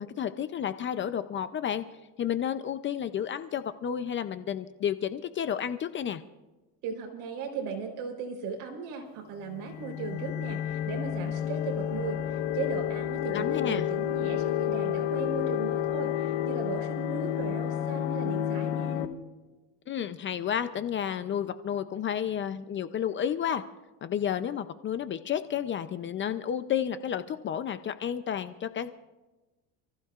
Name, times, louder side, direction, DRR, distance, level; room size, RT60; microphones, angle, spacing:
voice 1, 0.0-1.8 2.2-6.2 13.3-13.8 19.9-23.6 24.0-28.9, left 9 dB, 30° left, 11 dB, 0.5 m, -31 dB
voice 2, 6.8-19.1, right 5 dB, 65° right, 2 dB, 4.0 m, -37 dB
sound 1, 9.5-19.1, left 10 dB, 75° left, 1.2 m, -30 dB
29.0 x 15.0 x 2.5 m, 1.1 s
cardioid pair, 130°, 40 cm